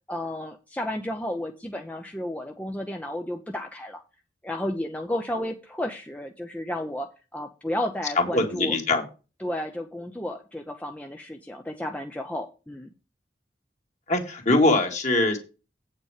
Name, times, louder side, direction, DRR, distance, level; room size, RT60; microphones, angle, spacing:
voice 1, 0.1-4.0 4.4-8.8 9.4-12.9, left 1 dB, 10° left, 3 dB, 0.7 m, -32 dB
voice 2, 8.2-9.0 14.1-15.4, left 2 dB, 45° left, 3 dB, 2.2 m, -22 dB
8.8 x 6.6 x 4.9 m, 0.31 s
head